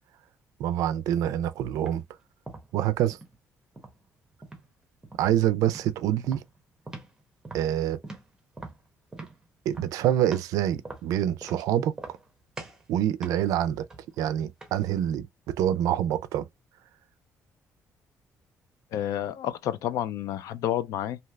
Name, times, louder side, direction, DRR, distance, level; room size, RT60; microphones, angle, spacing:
voice 1, 0.6-2.0 2.7-3.2 5.2-6.4 7.5-8.0 9.7-11.9 12.9-13.9 14.2-16.5, right 11 dB, 90° right, 0.3 m, -26 dB
sound 1, 1.8-2.0 2.5-3.3 3.8-4.7 5.0-5.3 5.6-5.9 6.2-7.2 7.4-10.6 10.8-11.6 11.9-12.3 12.6-12.9 13.2-14.9, right 3 dB, 10° right, 0.8 m, -43 dB
voice 2, 18.9-21.2, left 11 dB, 75° left, 0.4 m, -30 dB
3.2 x 2.7 x 2.3 m
cardioid pair, 175°, 6 cm